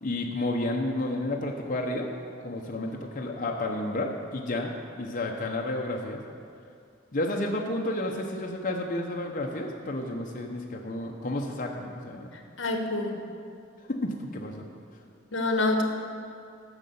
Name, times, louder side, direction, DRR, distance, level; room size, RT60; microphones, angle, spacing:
voice 1, 0.0-2.1 2.4-6.2 7.1-12.3 13.9-14.7, left 1 dB, 45° left, 0 dB, 0.8 m, -31 dB
voice 2, 12.3-13.2 15.3-15.8, left 2 dB, 70° left, 4 dB, 1.2 m, -27 dB
9.7 x 6.4 x 7.0 m, 2.4 s
head